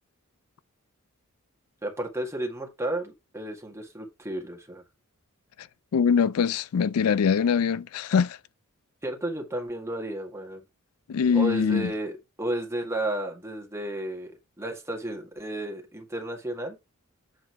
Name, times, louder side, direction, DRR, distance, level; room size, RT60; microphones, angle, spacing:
voice 1, 1.8-4.8 9.0-10.6 11.3-16.8, right 1 dB, 15° right, 1.9 m, -33 dB
voice 2, 5.9-8.4 11.1-11.9, left 6 dB, 80° left, 0.4 m, -23 dB
8.1 x 3.8 x 4.5 m
head